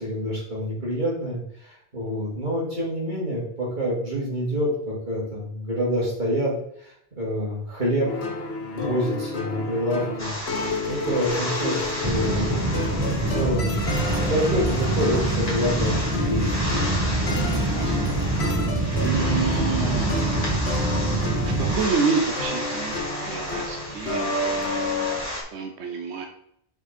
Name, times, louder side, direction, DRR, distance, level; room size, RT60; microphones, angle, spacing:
voice 1, 0.0-8.2 8.7-12.5 13.0-16.8, equal, 45° right, -5 dB, 3.1 m, -27 dB
sound 1, 8.1-25.2, left 2 dB, 75° left, 1.4 m, -31 dB
sound 2, 10.2-25.4, left 1 dB, 35° left, 2.8 m, -33 dB
sound 3, 12.0-21.8, right 2 dB, 15° right, 1.3 m, -25 dB
voice 2, 17.3-18.1 19.0-20.7 21.4-24.7 25.5-26.2, right 5 dB, 90° right, 4 dB, 1.1 m, -29 dB
6.4 x 5.2 x 4.4 m, 0.70 s
omnidirectional pair, 1.1 m